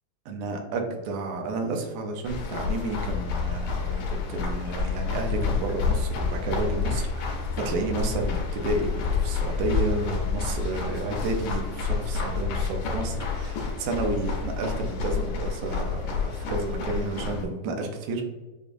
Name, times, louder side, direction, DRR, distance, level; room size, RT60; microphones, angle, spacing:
voice 1, 0.3-18.2, right 3 dB, 90° right, 2 dB, 2.2 m, -31 dB
sound 1, 2.2-17.5, left 5 dB, 90° left, 2.4 m, -29 dB
sound 2, 5.8-14.2, right 1 dB, 65° right, 0.7 m, -42 dB
6.7 x 2.5 x 2.5 m, 1.2 s
omnidirectional pair, 3.4 m